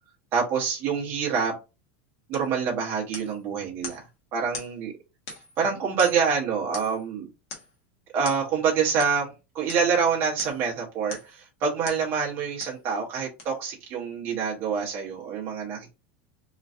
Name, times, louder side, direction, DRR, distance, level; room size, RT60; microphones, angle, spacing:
voice 1, 0.3-1.5 2.3-4.0 4.3-4.9 5.6-7.3 8.1-15.9, right 6 dB, 35° right, 0.9 m, -26 dB
sound 1, 2.3-2.5 3.1-3.4 3.8-4.1 4.5-4.7 5.3-5.6 6.0-6.3 6.7-7.1 7.5-7.7 8.2-8.4 9.0-9.2 9.7-9.9 10.4-10.7 11.1-11.4 11.9-12.1 12.6-12.8 13.4-13.5, left 4 dB, 45° left, 1.1 m, -40 dB
3.0 x 2.5 x 2.4 m
supercardioid pair, 155°, 6 cm